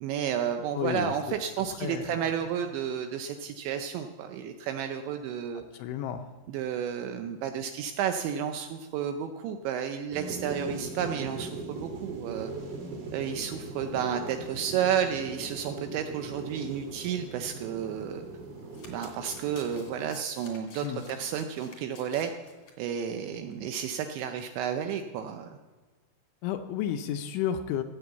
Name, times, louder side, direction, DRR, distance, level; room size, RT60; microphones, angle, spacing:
voice 1, 0.0-5.6 6.5-12.5 13.1-18.2 18.9-22.3 22.8-25.6, right 8 dB, 80° right, 6 dB, 2.7 m, -32 dB
voice 2, 0.7-1.4 1.8-2.3 5.7-6.3 13.9-14.0 20.8-21.0 26.4-27.8, left 10 dB, 80° left, 7 dB, 2.9 m, -32 dB
sound 1, 10.1-20.1, right 3 dB, 50° right, 2.8 m, -40 dB
Domestic sounds home sounds, 18.6-22.7 23.1-23.3 23.5-23.6, left 4 dB, 45° left, 2.2 m, -51 dB
15.5 x 6.9 x 8.1 m, 1.3 s
omnidirectional pair, 5.8 m